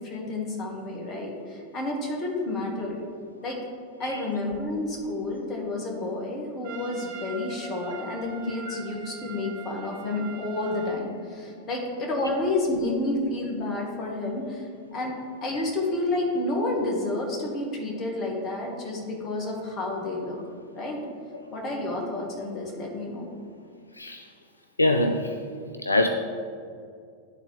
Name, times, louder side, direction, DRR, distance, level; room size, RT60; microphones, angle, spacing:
voice 1, 0.0-3.0 3.4-3.6 4.0-14.7 14.9-15.1 15.4-20.4 20.7-21.0 21.5-23.3, left 2 dB, 30° left, -1 dB, 1.6 m, -30 dB
Trumpet, 6.6-11.1, right 6 dB, 50° right, 0.8 m, -42 dB
voice 2, 23.9-24.3 24.8-25.4 25.8-26.1, left 1 dB, 80° left, 5 dB, 0.3 m, -25 dB
11.5 x 4.0 x 3.3 m, 2.3 s
figure-of-eight pair, 90°, 0 cm